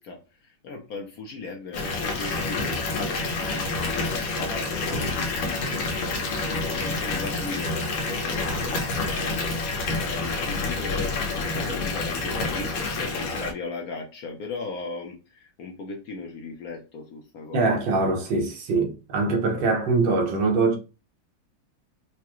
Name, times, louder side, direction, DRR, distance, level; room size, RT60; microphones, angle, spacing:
voice 1, 0.0-6.0 6.4-17.8, left 4 dB, 65° left, 0.9 m, -37 dB
Water tap faucet / Bathtub (filling or washing) / Fill (with liquid), 1.7-13.5, left 3 dB, 80° left, 1.6 m, -28 dB
voice 2, 17.5-20.8, right 3 dB, 75° right, 1.7 m, -23 dB
4.7 x 2.1 x 2.9 m
omnidirectional pair, 2.1 m